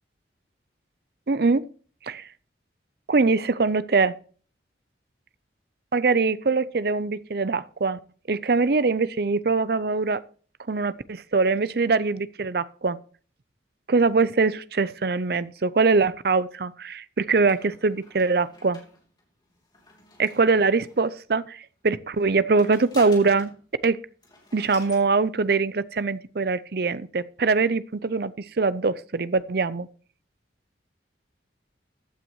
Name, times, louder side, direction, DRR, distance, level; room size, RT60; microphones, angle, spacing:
voice 1, 1.3-1.6 2.0-2.3 3.1-4.1 5.9-8.0 8.3-10.2 10.7-13.0 13.9-18.8 20.2-23.5 23.8-24.0 24.5-29.9, right 4 dB, 55° right, 0.5 m, -23 dB
sound 1, 17.5-21.1 22.1-23.6 23.9-24.0 24.2-25.1, left 2 dB, 25° left, 3.1 m, -48 dB
15.0 x 9.1 x 3.0 m
head